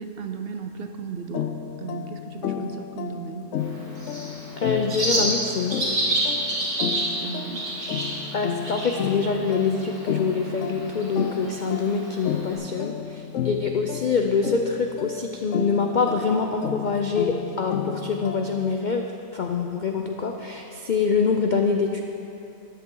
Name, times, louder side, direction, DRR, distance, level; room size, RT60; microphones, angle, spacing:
voice 1, 0.0-1.5 1.8-3.5 7.2-7.7, right 5 dB, 60° right, 6 dB, 0.6 m, -35 dB
sound 1, 1.3-18.8, left 8 dB, 65° left, 0.8 m, -32 dB
Bird, 3.6-12.5, right 1 dB, 90° right, 3.1 m, -30 dB
voice 2, 4.6-5.8 8.3-19.0 19.3-22.0, left 5 dB, 85° left, 3 dB, 0.4 m, -25 dB
13.5 x 10.5 x 3.8 m, 2.9 s
omnidirectional pair, 1.5 m